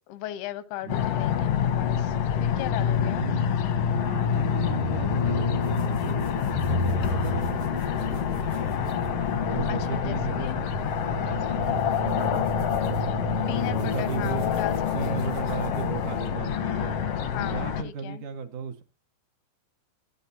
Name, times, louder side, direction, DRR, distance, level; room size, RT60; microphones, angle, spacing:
voice 1, 0.0-3.2 9.7-10.7 13.5-14.7 15.0-15.3 17.3-18.2, left 14 dB, 90° left, 3.0 m, -36 dB
voice 2, 0.8-1.2 3.2-3.4 4.0-9.1 9.5-10.5 10.9-12.7 13.1-13.4 13.8-14.5 14.9-16.9 17.4-18.8, right 6 dB, 65° right, 2.1 m, -36 dB
sound 1, 0.9-17.8, left 6 dB, 75° left, 1.4 m, -26 dB
sound 2, 5.6-16.3, right 2 dB, 85° right, 5.0 m, -52 dB
23.5 x 8.6 x 2.7 m
omnidirectional pair, 4.4 m